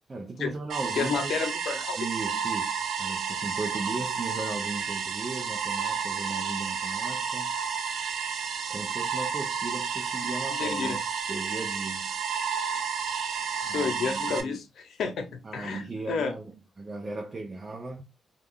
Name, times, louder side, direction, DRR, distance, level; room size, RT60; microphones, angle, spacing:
voice 1, 0.1-1.3 2.0-7.6 8.7-11.0 11.3-12.2 13.6-14.6 15.1-15.2 15.4-18.0, right 3 dB, 25° right, 0.5 m, -37 dB
sound 1, 0.7-14.4, right 6 dB, 75° right, 0.4 m, -31 dB
voice 2, 1.0-2.0 10.6-11.0 13.7-16.3, left 5 dB, 85° left, 0.6 m, -30 dB
2.4 x 2.3 x 3.4 m
wide cardioid pair, 170°, 0 cm